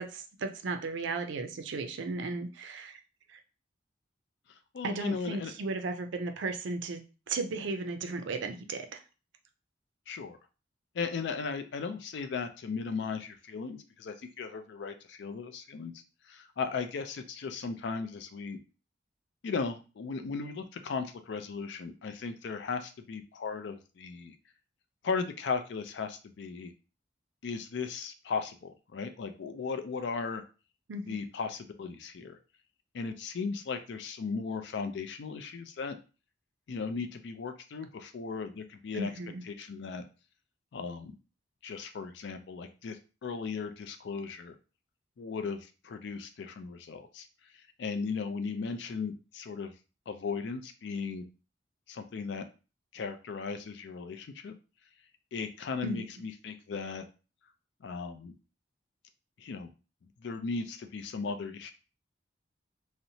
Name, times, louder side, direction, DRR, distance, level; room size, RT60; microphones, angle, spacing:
voice 1, 0.0-3.0 3.3-3.4 4.8-9.0 30.9-31.2 38.9-39.4 55.8-56.1, right 3 dB, 80° right, 7 dB, 0.4 m, -35 dB
voice 2, 4.7-5.5 10.1-10.4 10.9-15.9 16.3-18.6 19.4-24.3 25.0-26.7 27.4-30.4 31.1-32.4 32.9-36.0 36.7-39.1 39.4-40.0 40.7-41.2 41.6-44.5 45.2-47.3 47.8-49.7 50.1-51.2 51.9-52.4 52.9-54.5 55.3-57.0 57.8-58.3 59.4-59.7 60.2-61.7, left 5 dB, 70° left, 8 dB, 0.4 m, -36 dB
2.8 x 2.1 x 2.6 m, 0.33 s
head